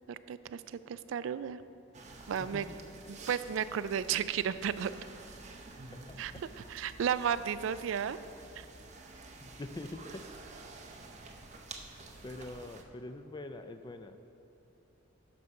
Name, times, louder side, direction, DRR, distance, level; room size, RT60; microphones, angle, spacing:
voice 1, 0.1-1.6 2.3-2.7 3.1-5.0 6.2-6.3 6.7-8.2 8.6-8.7, right 8 dB, 70° right, 14 dB, 0.3 m, -33 dB
sound 1, 1.9-12.8, right 3 dB, 35° right, 0.7 m, -50 dB
voice 2, 2.4-2.8 6.0-6.4 9.4-10.2 12.2-14.2, left 2 dB, 20° left, 8 dB, 0.4 m, -44 dB
11.0 x 6.5 x 4.6 m, 2.9 s
head